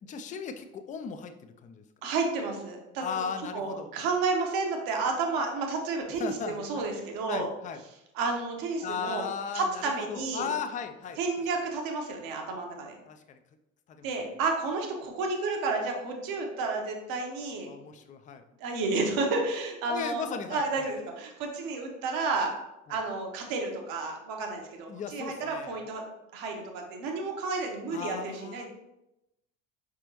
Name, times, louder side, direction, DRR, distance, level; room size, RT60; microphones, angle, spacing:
voice 1, 0.0-1.8 3.0-3.9 6.2-6.8 7.3-7.8 8.8-9.8 10.1-11.2 13.1-13.4 13.9-14.1 17.7-18.4 19.9-20.9 22.9-23.0 24.9-25.8 27.9-28.7, left 6 dB, 20° left, 8 dB, 0.3 m, -37 dB
voice 2, 2.0-3.0 3.5-7.5 8.1-9.2 9.5-10.5 11.2-12.9 14.0-17.7 18.6-22.5 22.9-26.0 26.3-28.7, right 3 dB, 60° right, 2 dB, 1.1 m, -31 dB
4.9 x 3.5 x 2.9 m, 0.91 s
hypercardioid pair, 65°, 39 cm